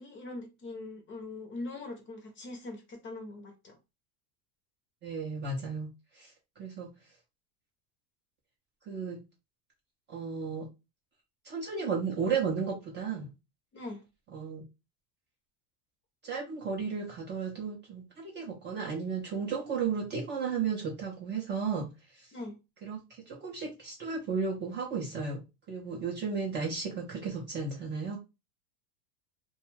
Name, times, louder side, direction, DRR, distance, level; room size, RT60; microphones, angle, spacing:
voice 1, 0.0-3.8 13.7-14.0 22.3-22.6, left 2 dB, 25° left, 0.6 m, -42 dB
voice 2, 5.0-5.9 6.1-6.9 8.9-9.2 10.1-10.7 11.4-13.3 14.3-14.6 16.2-21.9 22.1-22.3 22.8-23.0 23.3-25.4 25.7-28.2, right 5 dB, 25° right, 0.4 m, -34 dB
2.2 x 2.2 x 3.0 m
supercardioid pair, 125°, 48 cm